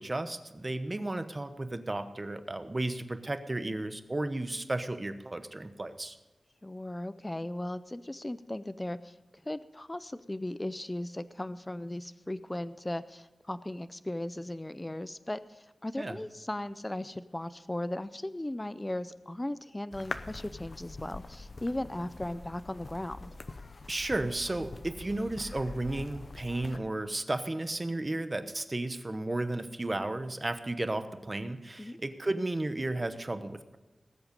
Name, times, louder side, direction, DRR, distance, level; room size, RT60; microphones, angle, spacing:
voice 1, 0.0-6.2 16.0-16.2 23.9-33.8, right 2 dB, 25° right, 10 dB, 1.0 m, -33 dB
voice 2, 6.6-9.1 9.5-23.3 31.8-32.0, left 1 dB, 15° left, 14 dB, 0.5 m, -37 dB
sound 1, 19.9-26.8, left 3 dB, 45° left, 0.8 m, -44 dB
19.0 x 8.0 x 5.3 m, 1.2 s
wide cardioid pair, 110°, 0 cm